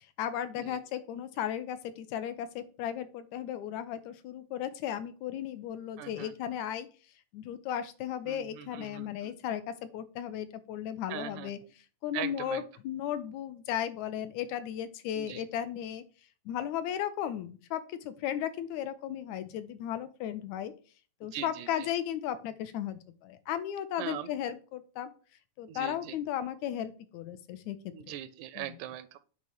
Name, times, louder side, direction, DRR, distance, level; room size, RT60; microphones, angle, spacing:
voice 1, 0.0-6.9 7.3-11.6 12.0-16.0 16.5-20.7 21.2-25.1 25.6-27.9 28.6-28.8, left 10 dB, 85° left, 11 dB, 2.0 m, -35 dB
voice 2, 6.0-6.3 8.3-9.4 11.1-11.5 12.1-12.7 15.2-15.4 21.3-21.9 24.0-24.3 25.7-26.2 27.9-29.2, right 12 dB, 90° right, 14 dB, 2.0 m, -41 dB
8.7 x 3.0 x 6.2 m, 0.37 s
omnidirectional pair, 3.3 m